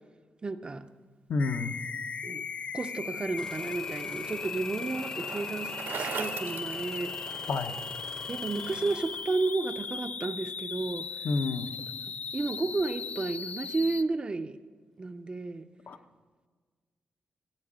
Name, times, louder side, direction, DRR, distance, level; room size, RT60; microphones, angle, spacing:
voice 1, 0.4-0.9 2.2-2.5 2.7-7.1 8.3-11.1 12.3-14.6 15.0-15.7, right 3 dB, 25° right, 9 dB, 0.5 m, -32 dB
voice 2, 1.3-1.8 7.5-7.7 11.2-11.7 15.9-16.0, left 3 dB, 60° left, 7 dB, 0.8 m, -29 dB
sound 1, 1.4-14.0, left 5 dB, 40° left, 0.3 m, -38 dB
Bicycle, 3.3-7.7, right 6 dB, 85° right, 1.5 m, -40 dB
Engine starting, 3.4-9.8 10.8-11.1 11.6-12.1 12.7-12.8, left 1 dB, 15° left, 0.7 m, -46 dB
16.0 x 8.7 x 6.2 m, 1.5 s
wide cardioid pair, 145°, 4 cm